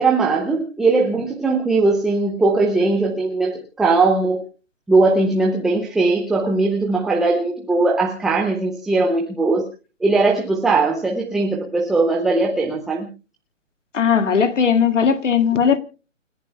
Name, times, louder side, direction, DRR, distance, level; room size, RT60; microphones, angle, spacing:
voice 1, 0.0-4.4 4.9-9.7 10.0-13.1, right 3 dB, ahead, 0.6 m, -19 dB
voice 2, 13.9-15.8, left 7 dB, 70° left, 2.1 m, -17 dB
29.0 x 10.5 x 2.2 m
hypercardioid pair, 145°, 38 cm